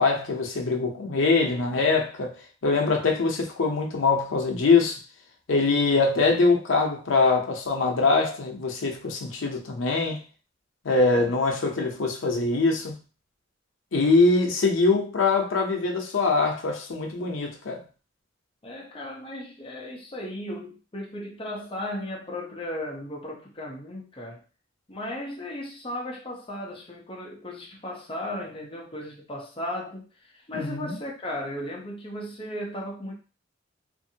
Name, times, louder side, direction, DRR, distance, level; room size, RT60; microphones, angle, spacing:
voice 1, 0.0-5.0 5.5-10.2 10.8-13.0 13.9-17.8 30.5-31.0, left 3 dB, 85° left, 0.7 m, -23 dB
voice 2, 18.6-24.4 24.9-33.2, left 1 dB, 30° left, 0.7 m, -36 dB
2.6 x 2.6 x 2.7 m
head